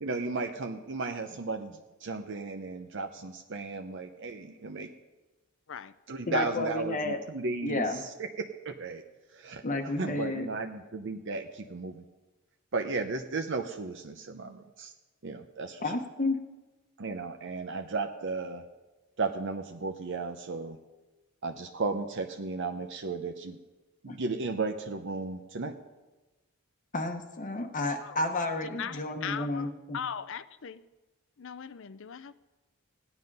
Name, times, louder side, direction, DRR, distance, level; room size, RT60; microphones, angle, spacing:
voice 1, 0.0-4.9 6.1-9.0 9.3-12.0 12.7-14.9 15.2-15.9 17.0-18.6 19.2-20.8 21.4-23.6 24.0-25.7, right 3 dB, 60° right, 0.7 m, -35 dB
voice 2, 6.3-7.2 7.6-8.0 9.6-10.5 15.8-16.4 24.1-24.2 26.9-30.0, left 2 dB, 35° left, 1.0 m, -31 dB
voice 3, 28.6-30.8 31.4-32.3, left 8 dB, 60° left, 0.6 m, -39 dB
16.5 x 10.0 x 5.4 m
head